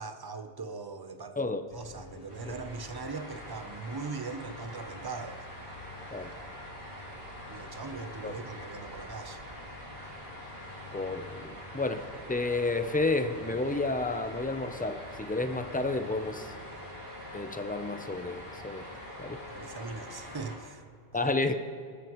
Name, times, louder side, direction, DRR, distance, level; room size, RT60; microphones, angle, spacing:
voice 1, 0.0-1.4 1.7-5.4 7.5-9.4 19.5-20.8 21.1-21.3, right 4 dB, 25° right, 8 dB, 0.6 m, -40 dB
sound 1, 1.7-20.5, left 3 dB, 40° left, 0.8 m, -51 dB
sound 2, 2.3-20.6, equal, 60° right, 4.1 m, -45 dB
voice 2, 10.9-16.5 17.3-18.9 19.2-19.4 21.1-21.5, left 3 dB, 15° left, 8 dB, 0.3 m, -31 dB
19.5 x 13.0 x 3.1 m, 2.3 s
omnidirectional pair, 1.1 m